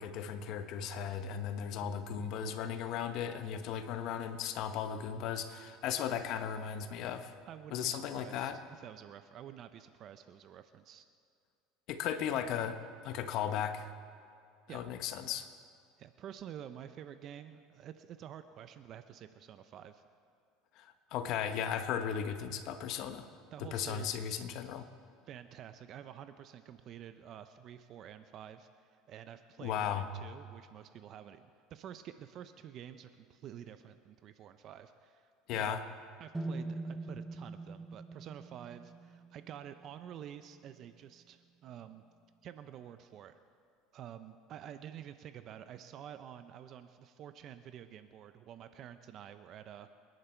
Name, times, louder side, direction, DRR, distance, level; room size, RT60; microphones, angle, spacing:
voice 1, 0.0-7.3 7.7-8.6 11.9-12.8 13.0-13.9 14.7-15.5 20.8-23.3 23.6-24.8 29.6-30.1 35.5-35.8, left 8 dB, 60° left, 9 dB, 1.2 m, -36 dB
voice 2, 7.5-11.0 14.7-14.9 16.0-20.0 23.5-24.5 25.3-31.4 31.7-35.8 36.2-42.0 42.4-43.4 43.9-49.9, right 10 dB, 45° right, 10 dB, 0.7 m, -49 dB
sound 1, 36.3-40.3, right 2 dB, 10° right, 0.9 m, -43 dB
27.5 x 11.0 x 4.5 m, 2.4 s
supercardioid pair, 125°, 0 cm